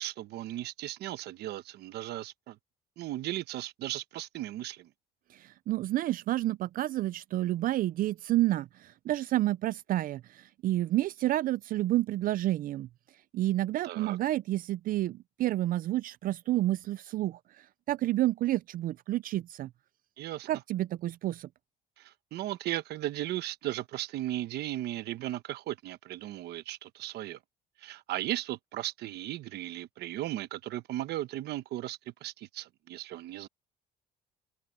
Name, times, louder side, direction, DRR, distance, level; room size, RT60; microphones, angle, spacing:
voice 1, 0.0-2.6 3.0-4.9 13.8-14.2 20.2-20.5 22.0-27.4 27.8-33.5, right 14 dB, 75° right, 1.0 m, -36 dB
voice 2, 5.3-12.9 13.3-19.7 20.5-21.5, right 15 dB, 55° right, 0.4 m, -30 dB
open air
cardioid pair, 110°, 17 cm